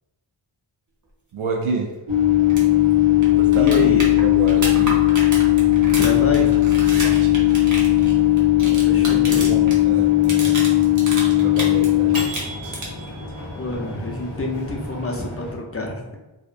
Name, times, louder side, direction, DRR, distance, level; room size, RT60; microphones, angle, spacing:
voice 1, 1.3-1.9 3.4-3.8 4.2-5.0 6.9-7.4 8.6-10.8 11.4-12.5, right 3 dB, 85° right, 2 dB, 0.5 m, -30 dB
Microwave oven, 2.1-15.5, left 14 dB, 70° right, 1.2 m, -18 dB
sound 1, 2.5-2.6 2.9-3.0 3.2-9.8 10.1-11.9 12.1-13.1 15.1-15.2, right 2 dB, 40° right, 0.7 m, -30 dB
voice 2, 3.6-4.1 5.9-6.5 8.6-9.5 13.6-16.2, left 2 dB, 30° left, -1 dB, 0.5 m, -27 dB
2.8 x 2.0 x 2.4 m, 1.1 s
wide cardioid pair, 50°, 48 cm